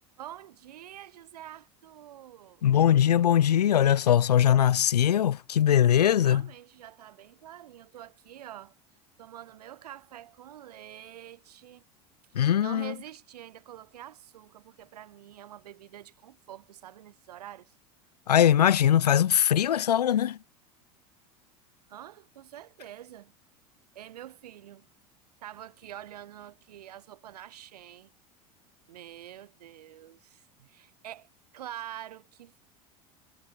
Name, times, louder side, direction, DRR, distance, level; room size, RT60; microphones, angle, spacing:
voice 1, 0.2-2.7 6.2-8.8 9.2-11.8 12.6-17.7 21.9-23.3 23.9-24.9 25.4-28.1 28.9-32.6, right 12 dB, 80° right, 7.6 m, -46 dB
voice 2, 2.6-6.4 12.3-12.9 18.3-20.4, left 10 dB, 85° left, 1.0 m, -21 dB
hypercardioid pair, 85°, 20 cm